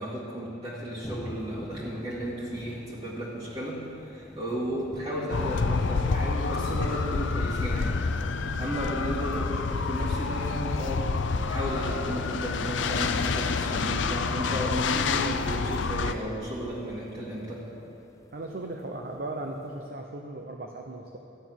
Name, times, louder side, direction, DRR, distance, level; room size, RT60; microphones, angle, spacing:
voice 1, 0.0-8.0 8.6-17.7, equal, 30° right, -8 dB, 1.9 m, -34 dB
sound 1, 1.0-19.9, left 1 dB, 15° left, 0.5 m, -47 dB
sound 2, 5.3-16.1, left 4 dB, 75° left, 0.5 m, -28 dB
voice 2, 18.3-21.2, right 2 dB, 50° right, 2 dB, 0.8 m, -37 dB
13.5 x 9.5 x 6.1 m, 2.7 s
head